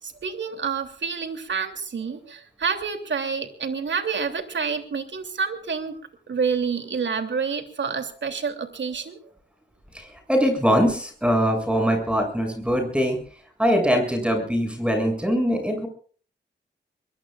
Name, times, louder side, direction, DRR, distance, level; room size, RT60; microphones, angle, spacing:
voice 1, 0.0-6.0 6.3-9.2, right 5 dB, 70° right, 7 dB, 3.0 m, -28 dB
voice 2, 9.9-13.2 13.6-15.9, equal, 5° right, 4 dB, 7.4 m, -22 dB
24.0 x 22.5 x 2.5 m, 0.43 s
cardioid pair, 75°, 20 cm